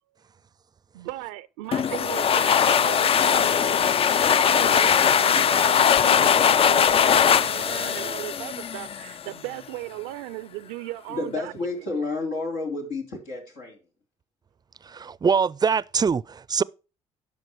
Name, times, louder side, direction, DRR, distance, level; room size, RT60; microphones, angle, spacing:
voice 1, 0.9-11.5, right 17 dB, 90° right, 0.4 m, -36 dB
sound 1, 1.7-9.2, left 8 dB, 45° left, 0.4 m, -20 dB
voice 2, 11.1-13.8, left 3 dB, 85° left, 3.5 m, -30 dB
voice 3, 14.8-16.6, right 6 dB, 30° right, 0.4 m, -23 dB
12.0 x 5.3 x 4.6 m
supercardioid pair, 55°, 14 cm